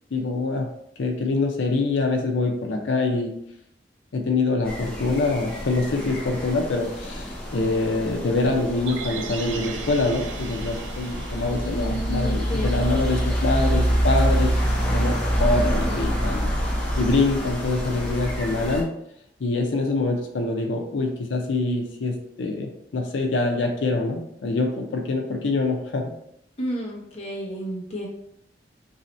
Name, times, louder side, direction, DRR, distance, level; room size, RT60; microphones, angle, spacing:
voice 1, 0.1-0.7 1.0-3.3 4.1-16.5 17.0-18.9 19.4-26.1, left 3 dB, 85° left, 2 dB, 0.5 m, -25 dB
sound 1, 4.6-18.8, equal, 5° left, 0.7 m, -26 dB
sound 2, 8.8-13.0 13.4-13.5, right 5 dB, 85° right, 0.5 m, -39 dB
voice 2, 11.7-13.0 26.6-28.1, right 1 dB, 35° left, -3 dB, 0.9 m, -31 dB
3.1 x 2.8 x 4.2 m, 0.73 s
head